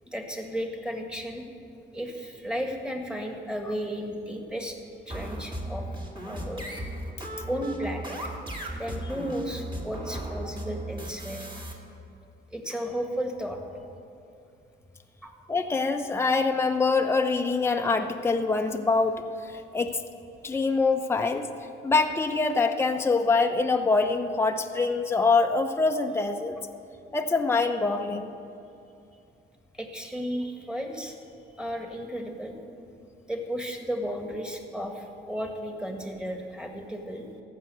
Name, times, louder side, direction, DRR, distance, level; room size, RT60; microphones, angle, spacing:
voice 1, 0.0-1.4 1.9-4.8 5.1-5.9 6.2-6.6 7.5-8.2 8.7-11.4 12.5-13.6 15.2-15.3 29.8-31.1 31.5-32.5 33.3-37.2, equal, 5° right, 3 dB, 1.7 m, -34 dB
sound 1, 5.1-11.7, right 1 dB, 25° right, 2.1 m, -36 dB
voice 2, 15.5-19.2 19.5-19.9 20.4-21.5 21.8-26.6 27.1-28.3, left 4 dB, 10° left, 4 dB, 0.7 m, -24 dB
14.5 x 5.8 x 7.8 m, 2.6 s
cardioid pair, 90°, 20 cm